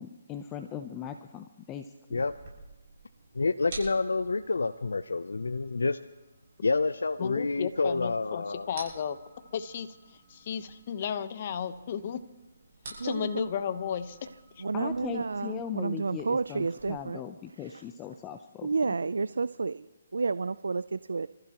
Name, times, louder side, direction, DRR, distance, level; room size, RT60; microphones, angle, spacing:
voice 1, 0.0-2.2 14.7-18.9, left 8 dB, 15° left, 0.7 m, -39 dB
sound 1, 2.1-16.9, right 3 dB, 50° right, 6.8 m, -51 dB
voice 2, 3.3-6.0 6.6-8.7, left 3 dB, 85° left, 0.5 m, -28 dB
voice 3, 7.2-9.2 9.5-12.2 13.0-14.3 14.6-14.7, left 8 dB, 40° left, 1.0 m, -34 dB
voice 4, 13.0-13.5 14.6-17.2 17.6-17.7 18.6-19.9 20.1-21.3, right 4 dB, 80° right, 0.4 m, -30 dB
28.0 x 14.5 x 3.0 m
hypercardioid pair, 155°, 0 cm